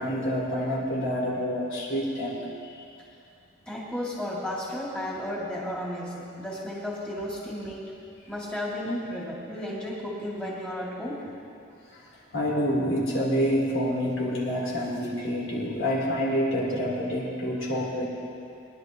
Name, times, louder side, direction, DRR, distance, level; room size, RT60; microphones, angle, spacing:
voice 1, 0.0-2.7 11.9-12.0 12.3-18.0, equal, 70° left, -5 dB, 3.6 m, -27 dB
voice 2, 3.7-7.9 8.3-11.2, left 1 dB, 5° left, -6 dB, 2.6 m, -33 dB
23.0 x 11.0 x 3.1 m, 2.6 s
head